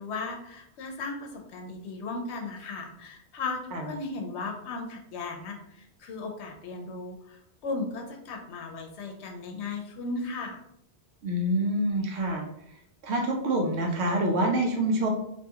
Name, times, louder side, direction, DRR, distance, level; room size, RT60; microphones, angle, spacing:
voice 1, 0.0-10.6, left 3 dB, 85° left, 3 dB, 0.9 m, -36 dB
voice 2, 11.2-12.4 13.0-15.1, right 1 dB, 85° right, 1 dB, 0.9 m, -26 dB
2.6 x 2.3 x 2.7 m, 0.76 s
omnidirectional pair, 1.1 m